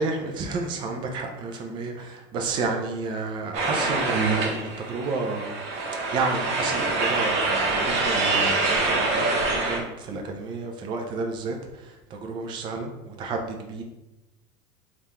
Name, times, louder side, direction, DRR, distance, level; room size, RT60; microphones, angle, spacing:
voice 1, 0.0-5.6 5.9-13.8, right 3 dB, 35° right, 3 dB, 0.5 m, -31 dB
sound 1, 3.5-9.8, right 3 dB, 50° right, 0.9 m, -25 dB
3.6 x 2.4 x 4.2 m, 0.99 s
supercardioid pair, 150°, 15 cm